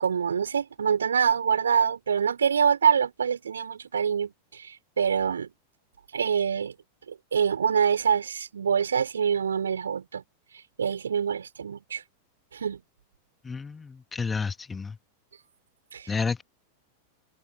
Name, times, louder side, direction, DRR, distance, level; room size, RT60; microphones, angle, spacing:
voice 1, 0.0-5.5 6.1-6.7 7.1-10.2 10.8-12.0 12.5-12.8 15.9-16.1, right 7 dB, 70° right, 4.5 m, -25 dB
voice 2, 13.4-15.0 16.1-16.4, left 5 dB, 15° left, 2.1 m, -30 dB
open air
figure-of-eight pair, 90°, 0 cm